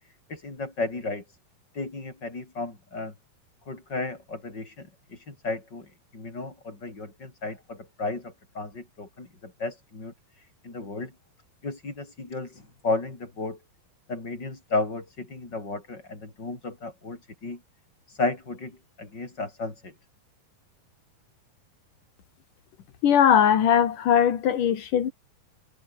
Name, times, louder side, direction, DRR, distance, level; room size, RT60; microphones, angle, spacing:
voice 1, 0.3-1.2 1.7-3.1 3.7-5.9 6.1-10.1 10.6-11.1 11.6-13.6 14.1-17.6 18.1-19.9, left 3 dB, 25° left, 5.9 m, -33 dB
voice 2, 23.0-25.1, left 9 dB, 60° left, 3.7 m, -20 dB
omnidirectional pair, 4.3 m